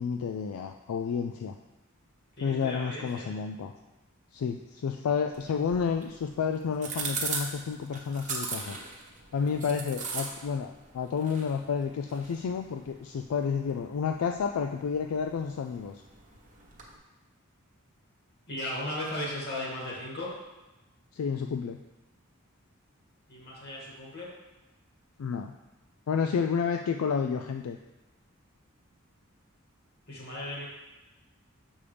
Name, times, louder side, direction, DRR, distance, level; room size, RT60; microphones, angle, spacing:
voice 1, 0.0-1.6 2.4-3.7 4.3-8.8 9.3-16.0 21.1-21.8 25.2-25.5 26.1-27.8, left 6 dB, 80° left, 4 dB, 0.3 m, -30 dB
voice 2, 2.4-3.3 18.5-20.3 23.3-24.3 30.1-30.7, left 1 dB, 50° left, -4 dB, 2.0 m, -36 dB
sound 1, 5.3-17.0, right 4 dB, 35° right, 1.0 m, -40 dB
7.0 x 5.4 x 3.3 m, 1.0 s
head